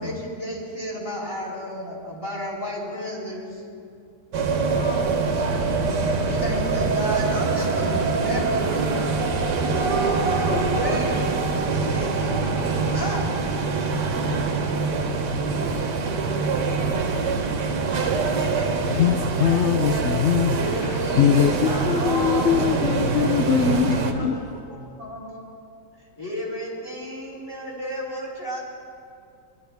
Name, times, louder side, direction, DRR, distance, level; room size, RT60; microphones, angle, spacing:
voice 1, 0.0-3.5 6.3-11.2 11.8-13.3 20.6-22.6 23.5-23.8 24.1-24.3 25.0-25.4 26.2-28.6, equal, 15° left, -6 dB, 3.2 m, -32 dB
sound 1, 4.3-24.1, right 4 dB, 80° right, 1.6 m, -24 dB
voice 2, 4.6-5.2 17.9-19.2 24.3-24.5, left 3 dB, 45° left, 0 dB, 1.1 m, -41 dB
voice 3, 18.9-24.4, left 8 dB, 75° left, 7 dB, 0.6 m, -22 dB
20.0 x 12.0 x 3.5 m, 2.4 s
omnidirectional pair, 1.8 m